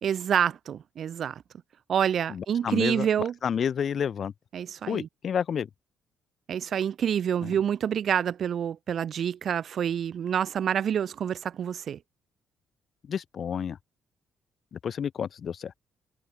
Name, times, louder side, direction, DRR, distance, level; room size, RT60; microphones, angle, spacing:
voice 1, 0.0-1.4 1.9-3.3 4.5-5.1 6.5-12.0, right 8 dB, 55° right, 2.7 m, -27 dB
voice 2, 2.3-4.3 4.9-5.7 7.4-7.6 13.0-13.8 14.7-15.7, left 7 dB, 50° left, 3.0 m, -30 dB
cardioid pair, 120°, 0 cm